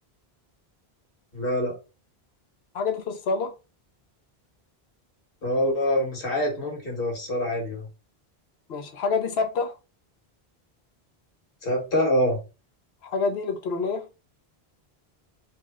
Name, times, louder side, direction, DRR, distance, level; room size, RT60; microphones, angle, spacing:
voice 1, 1.3-1.7 5.4-7.9 11.6-12.4, left 1 dB, 65° left, 1.7 m, -25 dB
voice 2, 2.7-3.5 8.7-9.7 13.0-14.0, left 4 dB, 80° left, 0.9 m, -27 dB
4.1 x 2.1 x 3.5 m
omnidirectional pair, 1.1 m